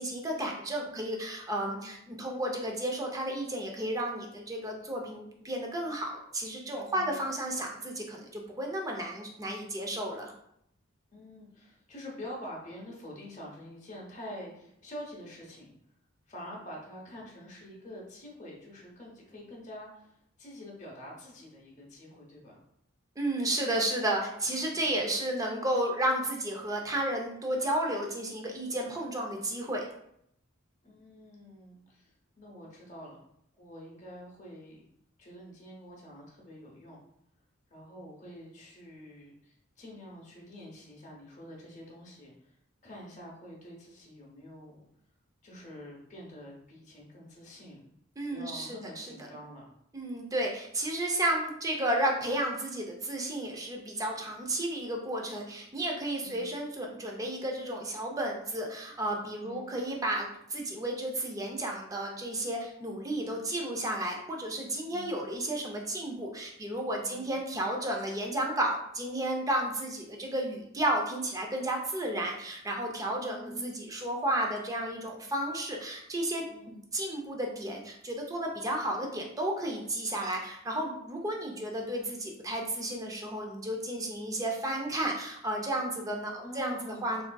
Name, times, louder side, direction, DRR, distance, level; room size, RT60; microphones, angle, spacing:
voice 1, 0.0-10.3 23.2-29.9 48.2-49.1 49.9-76.4 76.9-87.2, right 1 dB, 15° right, 1 dB, 0.4 m, -32 dB
voice 2, 1.6-2.2 6.9-7.2 11.1-15.7 16.3-22.6 24.1-24.8 30.8-33.2 33.6-34.8 35.2-37.0 37.7-42.6 42.8-44.8 45.4-47.9 48.3-49.7 56.2-56.5 59.4-59.7 64.9-65.2 67.1-67.4 73.1-74.0 76.4-76.8 81.6-81.9 86.4-87.2, left 1 dB, 35° left, -3 dB, 0.8 m, -47 dB
3.5 x 2.5 x 2.2 m, 0.73 s
head